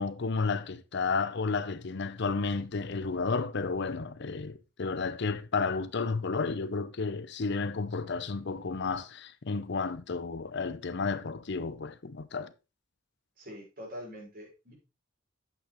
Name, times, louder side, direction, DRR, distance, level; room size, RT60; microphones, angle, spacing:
voice 1, 0.0-12.5, left 4 dB, 60° left, 0.7 m, -32 dB
voice 2, 13.4-14.7, equal, 50° right, 5.1 m, -44 dB
9.2 x 8.2 x 3.1 m
head